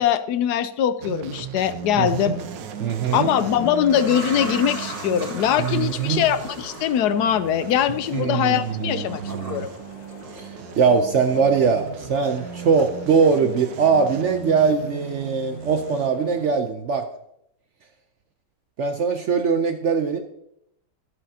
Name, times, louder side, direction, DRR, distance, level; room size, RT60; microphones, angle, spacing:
voice 1, 0.0-2.4 3.1-9.7, left 9 dB, 75° left, 13 dB, 1.0 m, -22 dB
sound 1, 1.0-16.1, right 9 dB, 85° right, 1.3 m, -37 dB
sound 2, 1.8-16.6, left 2 dB, 90° left, 2.3 m, -44 dB
voice 2, 2.0-2.4 2.8-3.3 5.6-6.3 8.1-9.7 10.3-10.5 10.8-17.1 18.8-20.2, right 5 dB, 70° right, 7 dB, 0.7 m, -21 dB
sound 3, 2.1-2.2 2.9-11.0 11.3-12.3 12.8-12.9, right 2 dB, 45° right, 2.7 m, -38 dB
13.5 x 8.3 x 2.7 m, 0.76 s
omnidirectional pair, 1.9 m